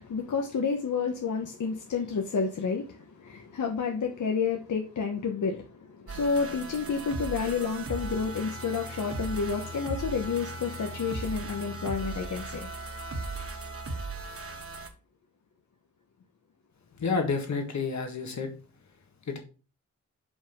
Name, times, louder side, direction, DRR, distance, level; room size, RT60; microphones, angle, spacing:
voice 1, 0.0-12.7, left 5 dB, 90° left, 1.1 m, -30 dB
sound 1, 6.1-14.9, right 3 dB, 50° right, 1.1 m, -37 dB
voice 2, 17.0-18.5 19.3-19.4, left 4 dB, 70° left, 1.7 m, -29 dB
5.4 x 5.3 x 5.2 m
wide cardioid pair, 165°, 29 cm